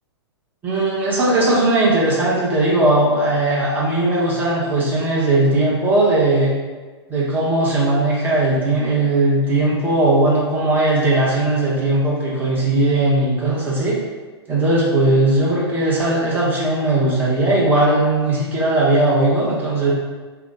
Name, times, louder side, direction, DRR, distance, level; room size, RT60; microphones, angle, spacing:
voice 1, 0.6-6.5 7.1-14.0 14.5-19.9, right 2 dB, 15° right, -7 dB, 1.1 m, -18 dB
4.7 x 2.3 x 3.9 m, 1.4 s
figure-of-eight pair, 105°, 14 cm